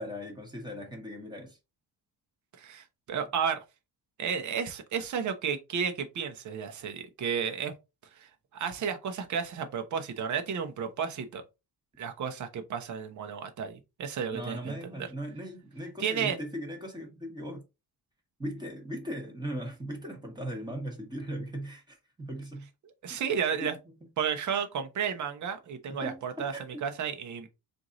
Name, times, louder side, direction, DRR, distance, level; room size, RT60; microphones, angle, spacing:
voice 1, 0.0-1.6 14.3-17.6 18.4-22.7 23.1-23.2 23.6-23.8 26.0-26.6, equal, 10° right, 1.3 m, -38 dB
voice 2, 2.6-3.6 4.2-7.7 8.2-11.4 12.0-15.1 16.0-16.4 23.0-23.8 24.2-26.5 26.8-27.5, right 7 dB, 50° right, 0.9 m, -32 dB
4.6 x 2.6 x 3.8 m
cardioid pair, 165°, 38 cm